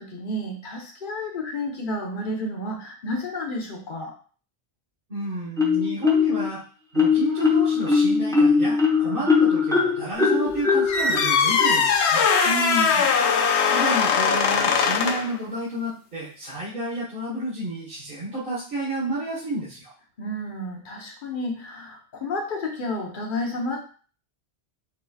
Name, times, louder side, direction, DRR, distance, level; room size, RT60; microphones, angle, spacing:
voice 1, 0.0-4.2 9.0-9.2 12.4-13.1 20.2-23.8, left 1 dB, 50° left, 1 dB, 1.1 m, -31 dB
voice 2, 5.1-6.6 6.9-12.2 13.7-19.9, right 1 dB, 55° right, -9 dB, 1.6 m, -31 dB
Marimba xylophone, 5.6-6.5 6.9-12.5, left 5 dB, 5° left, 0.9 m, -21 dB
sound 1, 10.9-15.3, left 6 dB, 90° left, 0.9 m, -20 dB
6.3 x 3.0 x 2.4 m, 0.41 s
omnidirectional pair, 1.1 m